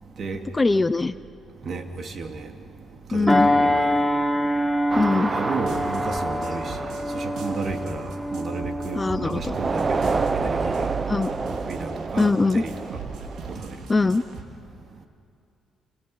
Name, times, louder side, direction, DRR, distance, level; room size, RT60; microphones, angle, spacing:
voice 1, 0.6-1.1 3.1-3.5 5.0-5.3 9.0-9.5 11.1-11.3 12.2-12.6 13.9-14.2, left 3 dB, 20° left, 0.6 m, -21 dB
voice 2, 1.6-2.5 3.1-3.9 5.1-10.1 10.3-10.9 11.7-12.7 13.5-13.7, right 4 dB, 50° right, 2.4 m, -33 dB
sound 1, 3.3-12.1 12.6-12.8, left 1 dB, 5° right, 3.3 m, -26 dB
sound 2, 4.9-8.9 9.4-13.6, right 4 dB, 30° right, 0.7 m, -30 dB
sound 3, 5.6-7.1 7.4-14.4, right 5 dB, 80° right, 3.0 m, -38 dB
29.5 x 27.0 x 5.7 m
cardioid pair, 90°, 0 cm